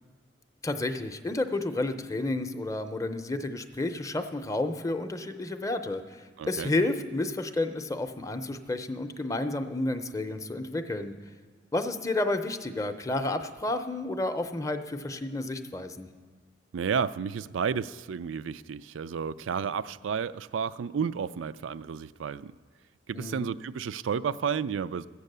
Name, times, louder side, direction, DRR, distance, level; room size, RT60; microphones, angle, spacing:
voice 1, 0.6-11.1 11.7-16.1 23.1-23.5, left 2 dB, 15° left, 7 dB, 0.6 m, -31 dB
voice 2, 6.4-6.7 16.7-22.5 23.1-25.1, right 6 dB, 85° right, 16 dB, 0.4 m, -31 dB
14.5 x 8.3 x 6.7 m, 1.5 s
head